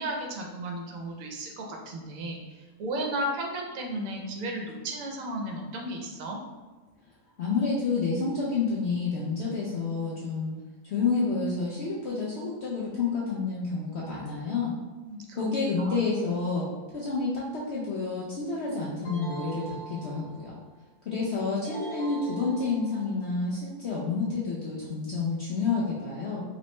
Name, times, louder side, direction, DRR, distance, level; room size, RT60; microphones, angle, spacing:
voice 1, 0.0-6.4 15.0-15.4 15.8-16.0, right 1 dB, 65° right, 1 dB, 1.0 m, -34 dB
voice 2, 7.4-10.5 10.8-14.7 15.3-16.7 16.9-20.6 21.0-26.4, left 4 dB, 75° left, -5 dB, 0.6 m, -29 dB
sound 1, 19.0-20.6 21.6-23.2, right 3 dB, 90° left, 1.3 m, -41 dB
3.1 x 3.0 x 3.1 m, 1.3 s
omnidirectional pair, 1.7 m